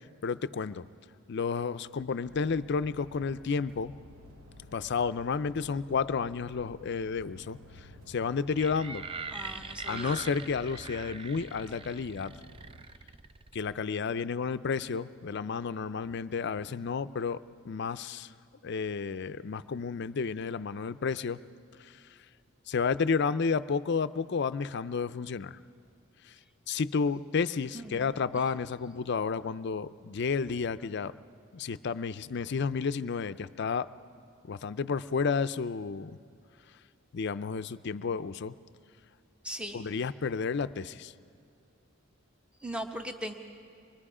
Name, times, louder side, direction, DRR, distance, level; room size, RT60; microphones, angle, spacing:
voice 1, 0.2-0.8 1.3-3.9 4.7-9.0 9.9-12.3 13.5-17.4 17.7-18.3 18.6-21.4 21.8-21.9 22.7-25.6 26.7-31.1 31.5-33.9 34.5-36.2 37.1-38.5 39.7-41.1, left 5 dB, 55° left, 14 dB, 0.5 m, -31 dB
sound 1, 2.2-12.8, left 1 dB, 80° right, 1.3 m, -52 dB
sound 2, 8.5-13.8, right 4 dB, 25° right, 0.4 m, -43 dB
voice 2, 9.3-10.2 27.7-28.2 39.4-39.8 42.6-43.3, equal, 5° right, 4 dB, 1.1 m, -39 dB
25.0 x 22.5 x 4.9 m, 2.5 s
head